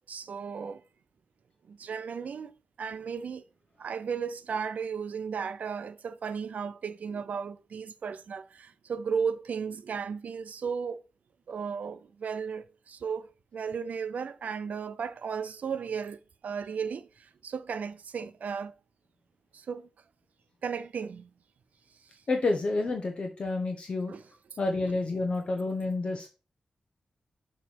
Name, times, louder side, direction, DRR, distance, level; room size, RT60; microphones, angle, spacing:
voice 1, 0.1-0.8 1.7-2.5 2.8-3.4 3.8-11.0 11.5-16.2 16.4-18.7 19.5-19.9 20.6-21.3 24.1-24.2, right 6 dB, 85° right, 0.5 m, -35 dB
voice 2, 22.3-24.1 24.6-26.3, left 3 dB, 45° left, 0.8 m, -29 dB
6.6 x 3.1 x 5.7 m
wide cardioid pair, 175°, 3 cm